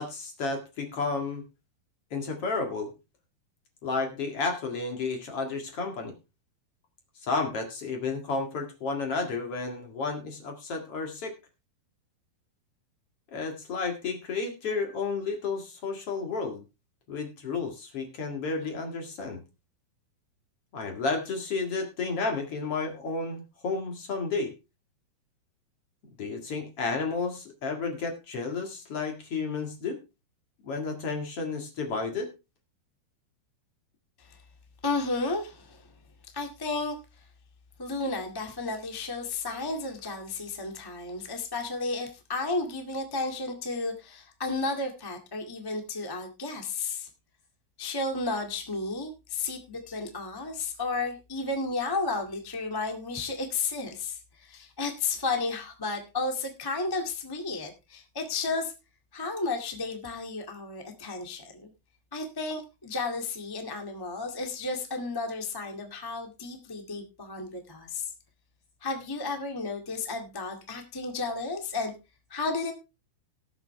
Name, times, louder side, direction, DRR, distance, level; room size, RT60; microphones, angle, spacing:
voice 1, 0.0-1.4 2.1-2.9 3.8-6.1 7.2-11.3 13.3-16.6 17.1-19.4 20.7-24.5 26.2-30.0 30.6-32.3, left 4 dB, 45° left, 3 dB, 2.3 m, -32 dB
voice 2, 34.8-35.9 36.3-36.9 37.8-47.1 47.8-58.7 59.1-61.7 62.1-68.1 68.8-71.9 72.3-72.7, left 3 dB, 15° left, 3 dB, 0.7 m, -33 dB
19.0 x 7.1 x 3.3 m, 0.27 s
omnidirectional pair, 4.5 m